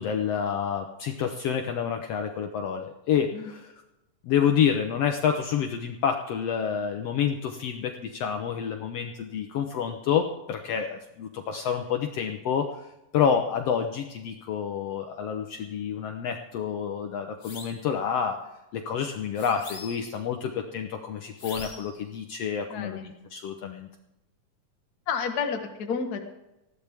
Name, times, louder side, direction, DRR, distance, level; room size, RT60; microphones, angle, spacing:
voice 1, 0.0-3.7 4.2-12.9 13.1-18.4 18.7-23.9, left 7 dB, 90° left, 4 dB, 1.3 m, -28 dB
sound 1, 17.4-17.9 19.4-20.2 21.4-22.0, left 3 dB, 35° left, 1.3 m, -43 dB
voice 2, 22.7-23.1 25.1-26.2, left 6 dB, 60° left, 4 dB, 1.0 m, -30 dB
19.5 x 15.0 x 3.5 m, 0.94 s
omnidirectional pair, 4.0 m